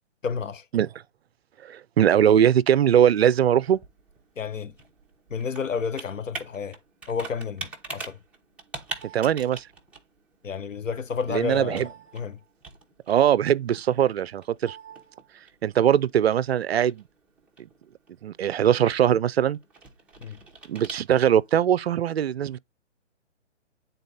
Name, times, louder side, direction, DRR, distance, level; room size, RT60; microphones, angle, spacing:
voice 1, 0.2-0.6 4.4-4.7 5.3-6.8 7.1-8.2 10.4-12.4 20.2-20.4, left 6 dB, 90° left, 1.0 m, -31 dB
voice 2, 1.6-3.8 9.1-9.6 11.3-11.9 13.1-14.8 15.6-17.0 18.2-19.6 20.7-22.6, right 10 dB, 55° right, 0.5 m, -21 dB
Computer keyboard, 3.2-21.5, right 4 dB, 5° right, 0.9 m, -44 dB
9.3 x 4.0 x 4.0 m
hypercardioid pair, 140°, 37 cm